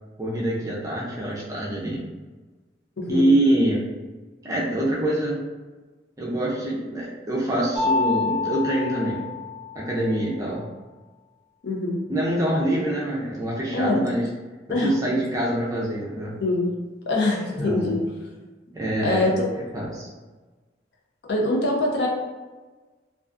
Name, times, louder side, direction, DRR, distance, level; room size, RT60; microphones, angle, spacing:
voice 1, 0.2-2.0 3.1-3.8 4.4-5.4 6.2-9.2 9.7-10.6 12.1-14.2 14.8-16.3 17.6-17.9 18.7-19.3 19.7-20.1, right 1 dB, 20° right, -5 dB, 0.4 m, -25 dB
voice 2, 3.0-3.3 11.6-12.0 13.7-14.1 14.7-14.9 16.4-16.7 17.1-18.0 19.0-19.5 21.3-22.1, left 2 dB, 65° left, -1 dB, 0.5 m, -23 dB
Mallet percussion, 7.8-10.3, left 4 dB, 35° left, 0.8 m, -27 dB
2.3 x 2.3 x 2.4 m, 1.3 s
head